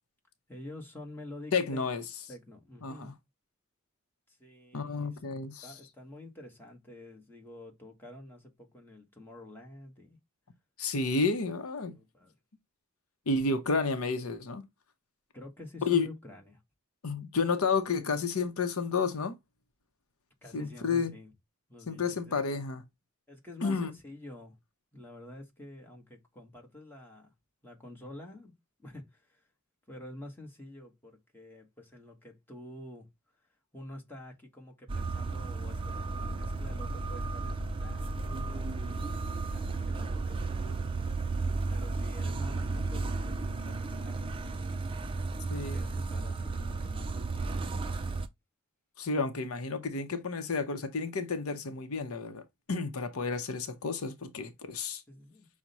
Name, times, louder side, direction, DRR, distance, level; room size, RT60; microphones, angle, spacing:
voice 1, 0.5-3.1 4.3-5.2 5.6-10.2 11.8-12.3 15.3-16.6 20.4-21.3 21.7-22.4 23.3-24.6 24.9-27.3 27.6-28.5 28.8-29.5 29.9-33.1 33.7-40.9 41.7-44.7 45.5-47.6 55.1-55.5, left 1 dB, 10° left, 1.2 m, -48 dB
voice 2, 1.5-2.0 2.8-3.1 4.7-5.7 10.8-11.9 13.3-14.7 15.8-16.1 17.0-19.4 20.5-21.1 21.9-22.8 23.6-23.9 45.5-45.8 49.0-52.4 52.7-55.0, left 4 dB, 80° left, 0.7 m, -31 dB
sound 1, 34.9-48.3, right 3 dB, 25° right, 0.4 m, -34 dB
5.9 x 2.1 x 4.0 m
head